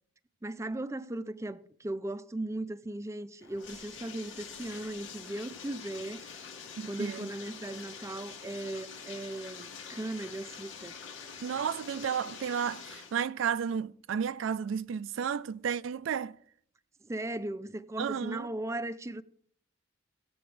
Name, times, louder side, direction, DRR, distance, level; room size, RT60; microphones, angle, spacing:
voice 1, 0.4-6.4 6.8-11.0 17.0-19.2, right 1 dB, 15° right, 0.4 m, -37 dB
Bathtub (filling or washing), 3.4-13.2, left 6 dB, 90° left, 1.4 m, -46 dB
voice 2, 6.8-7.3 11.4-16.4 18.0-18.5, right 7 dB, 85° right, 0.3 m, -32 dB
16.5 x 7.8 x 3.3 m
head